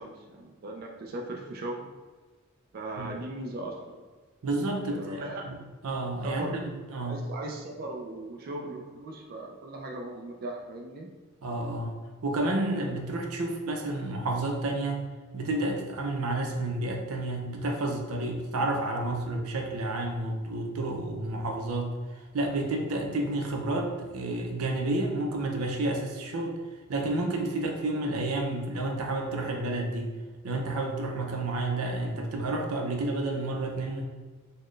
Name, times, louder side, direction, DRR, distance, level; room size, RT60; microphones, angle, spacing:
voice 1, 0.0-1.9 2.7-4.0 4.8-5.5 6.2-6.6 7.0-11.1, right 2 dB, 45° right, 0 dB, 0.3 m, -38 dB
voice 2, 4.4-7.2 11.4-11.9 12.2-26.6 26.9-30.1 30.4-34.0, right 2 dB, 90° right, 2 dB, 0.6 m, -30 dB
4.1 x 2.1 x 3.2 m, 1.4 s
head